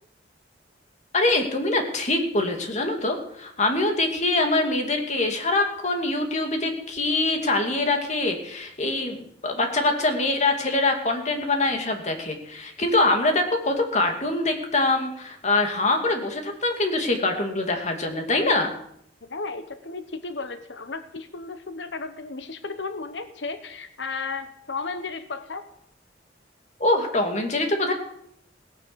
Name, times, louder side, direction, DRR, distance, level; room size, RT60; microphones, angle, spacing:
voice 1, 1.1-18.7 26.8-27.9, left 2 dB, 40° left, 3 dB, 2.5 m, -24 dB
voice 2, 19.2-25.7, left 4 dB, 75° left, 10 dB, 1.1 m, -34 dB
17.5 x 10.0 x 6.9 m, 0.70 s
head